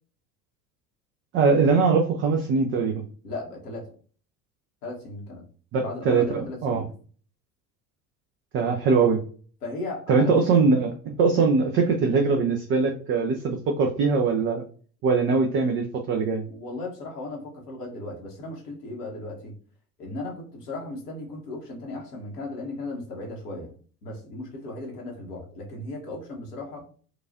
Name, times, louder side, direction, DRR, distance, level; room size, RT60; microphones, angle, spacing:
voice 1, 1.3-3.0 5.7-6.8 8.5-9.2 10.1-14.6 15.0-16.5, right 4 dB, 30° right, 2 dB, 0.5 m, -22 dB
voice 2, 3.2-3.9 4.8-5.5 5.8-6.9 9.6-10.7 15.3-15.4 16.5-19.5 20.0-23.7 24.0-26.9, left 2 dB, 70° left, -2 dB, 1.2 m, -36 dB
4.6 x 2.4 x 2.5 m, 0.42 s
figure-of-eight pair, 65°, 48 cm